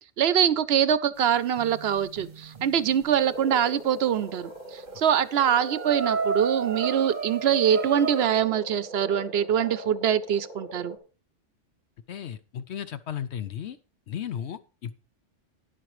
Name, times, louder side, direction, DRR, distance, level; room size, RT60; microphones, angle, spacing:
voice 1, 0.2-11.0, right 9 dB, 65° right, 16 dB, 0.8 m, -24 dB
sound 1, 1.3-3.0 4.4-4.5 4.9-5.0 5.3-8.3, right 5 dB, 40° right, 1.0 m, -32 dB
Frog, 3.2-11.0, equal, 40° left, 2.3 m, -41 dB
voice 2, 12.1-13.8 14.1-15.0, left 9 dB, 70° left, 12 dB, 0.9 m, -35 dB
12.0 x 10.5 x 3.1 m, 0.33 s
omnidirectional pair, 1.2 m